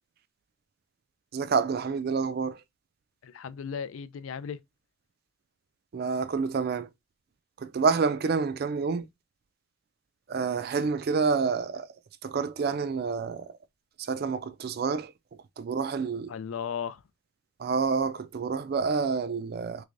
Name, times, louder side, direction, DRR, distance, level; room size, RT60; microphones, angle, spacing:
voice 1, 1.3-2.6 5.9-6.9 7.6-9.1 10.3-11.9 12.2-13.5 14.1-15.1 15.6-16.3 17.6-19.8, right 5 dB, 50° right, 0.3 m, -28 dB
voice 2, 3.2-4.6 16.3-17.0, left 7 dB, 80° left, 0.4 m, -35 dB
3.4 x 3.2 x 2.5 m
head